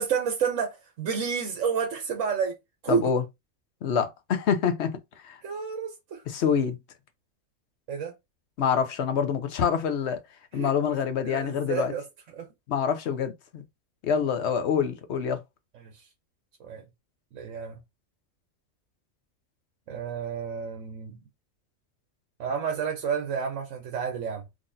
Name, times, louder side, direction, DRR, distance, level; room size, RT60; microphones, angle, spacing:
voice 1, 0.0-2.6 2.8-3.1 5.4-6.2 7.9-8.1 10.5-10.7 11.2-12.0 12.3-12.5 15.7-16.0 16.6-16.8 17.3-17.8 19.9-21.2 22.4-24.5, right 6 dB, 70° right, 1.1 m, -30 dB
voice 2, 2.9-3.2 3.8-4.9 5.2-5.4 6.3-6.8 8.6-10.2 10.5-11.9 12.7-13.6 14.0-15.4, left 7 dB, 60° left, 0.9 m, -26 dB
3.9 x 3.0 x 2.6 m
omnidirectional pair, 1.4 m